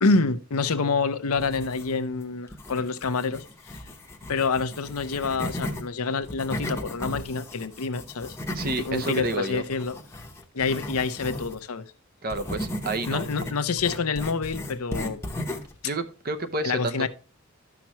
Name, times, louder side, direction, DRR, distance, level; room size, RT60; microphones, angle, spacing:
voice 1, 0.0-3.8 4.3-8.4 8.7-10.0 10.5-11.9 13.1-15.2 16.6-17.1, left 4 dB, 80° left, 0.7 m, -27 dB
sound 1, 1.3-2.1 2.5-5.8 6.2-11.6 12.3-15.8, left 1 dB, 10° left, 0.9 m, -36 dB
voice 2, 8.5-9.6 12.2-13.2 15.8-17.1, right 2 dB, 40° right, 0.7 m, -29 dB
12.5 x 6.0 x 3.0 m
head